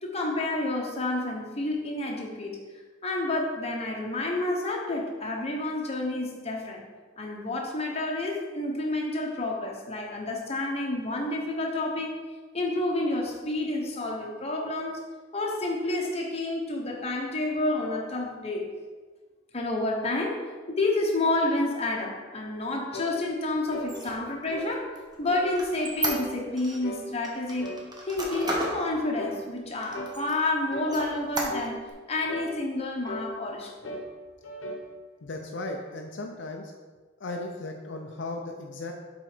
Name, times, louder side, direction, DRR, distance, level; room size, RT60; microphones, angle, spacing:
voice 1, 0.0-2.6 3.0-6.8 7.2-12.2 12.5-15.0 15.3-18.7 19.5-24.9 25.2-31.8 32.1-34.0, left 2 dB, 35° left, 0 dB, 1.1 m, -29 dB
sound 1, 22.9-23.2 23.7-23.9 24.5-24.7 25.3-25.5 26.0-26.3 26.8-27.1 27.6-27.9 28.4-28.6 29.2-29.4 29.9-30.2 30.7-31.0 31.5-31.7 32.3-32.5 33.1-33.3 33.8-34.1 34.4-34.9, left 1 dB, 85° left, 1.1 m, -37 dB
Squeak, 23.8-26.8 27.2-28.8 29.3-29.4 29.8-30.5 30.9-31.9, right 2 dB, 20° right, 1.0 m, -33 dB
voice 2, 35.2-36.7 37.2-38.9, left 2 dB, 65° left, 1 dB, 0.6 m, -36 dB
7.5 x 4.0 x 5.0 m, 1.4 s
head